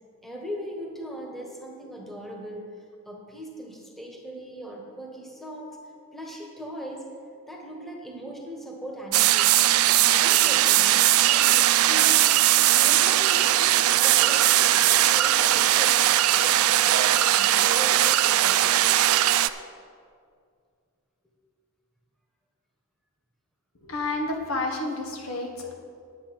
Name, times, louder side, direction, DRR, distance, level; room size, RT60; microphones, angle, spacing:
voice 1, 0.2-5.8 6.1-7.1 7.5-9.5 9.8-12.2 12.7-15.9 16.3-18.7, equal, ahead, -1 dB, 1.4 m, -39 dB
sound 1, 9.1-19.5, right 13 dB, 85° right, 0.4 m, -20 dB
voice 2, 23.8-25.7, left 2 dB, 80° left, 1 dB, 1.5 m, -30 dB
9.9 x 7.9 x 5.9 m, 2.2 s
head